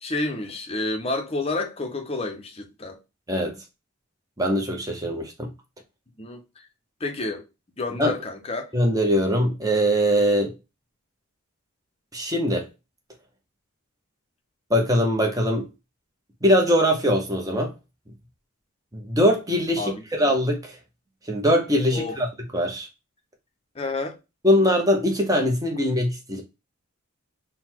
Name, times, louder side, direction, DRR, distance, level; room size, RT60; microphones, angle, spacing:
voice 1, 0.0-3.0 6.2-6.4 7.0-7.4 7.8-8.7 19.8-20.0 21.9-22.2 23.7-24.2, left 2 dB, 25° left, 0.6 m, -29 dB
voice 2, 4.4-5.5 8.0-8.1 8.7-10.5 12.1-12.6 14.7-15.7 16.4-17.7 18.9-20.8 21.3-22.3 22.5-22.9 24.4-26.4, equal, 15° right, 0.8 m, -22 dB
3.9 x 2.2 x 4.3 m
head